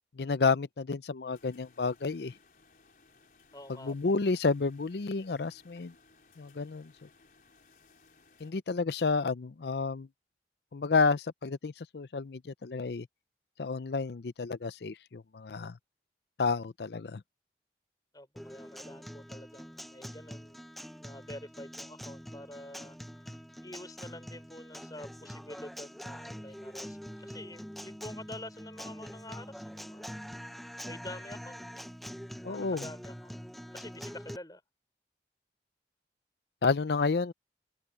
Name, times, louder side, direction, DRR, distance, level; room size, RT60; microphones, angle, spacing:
voice 1, 0.2-2.3 3.8-5.9 6.4-7.1 8.4-10.1 10.7-13.1 13.6-15.7 16.4-17.2 32.4-32.8 36.6-37.3, left 4 dB, 70° left, 0.5 m, -30 dB
sound 1, 1.3-8.5, left 4 dB, 50° left, 4.3 m, -62 dB
voice 2, 3.5-4.0 18.1-20.6 21.0-23.0 23.6-30.2 30.8-31.8 32.4-33.4 33.7-34.6, left 1 dB, 20° left, 5.8 m, -47 dB
Guitar, 18.4-34.4, equal, ahead, 0.6 m, -44 dB
open air
head